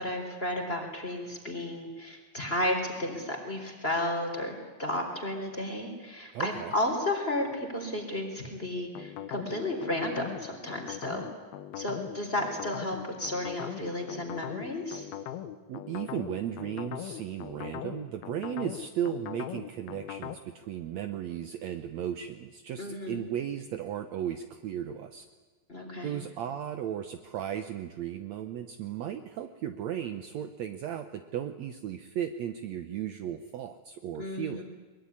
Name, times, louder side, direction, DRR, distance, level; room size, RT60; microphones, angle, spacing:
voice 1, 0.0-11.3 11.8-15.1 22.8-23.2 25.7-26.2 34.2-34.6, left 1 dB, 15° left, 3 dB, 3.7 m, -33 dB
voice 2, 6.3-6.7 15.7-25.3 26.0-34.6, right 10 dB, 80° right, 8 dB, 1.5 m, -35 dB
sound 1, 9.0-20.4, left 11 dB, 80° left, 2.9 m, -40 dB
22.5 x 22.0 x 9.9 m, 1.3 s
omnidirectional pair, 4.4 m